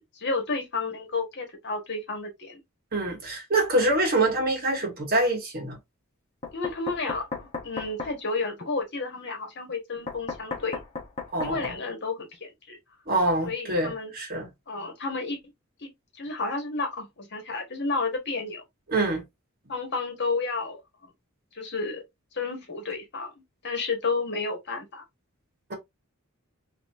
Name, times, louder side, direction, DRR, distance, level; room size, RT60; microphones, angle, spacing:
voice 1, 0.1-2.6 6.5-10.8 11.4-12.8 13.4-14.1 14.7-15.4 15.8-15.9 16.2-18.6 19.7-21.1 21.5-22.0 22.3-23.3 23.6-25.0, left 3 dB, 50° left, 1.4 m, -31 dB
voice 2, 2.9-5.8 11.3-11.8 13.1-14.5 18.9-19.2 25.7-25.8, right 2 dB, 45° right, 1.3 m, -25 dB
Knock, 6.4-8.2 10.1-11.8, left 3 dB, 30° left, 1.2 m, -35 dB
4.1 x 2.9 x 2.6 m
head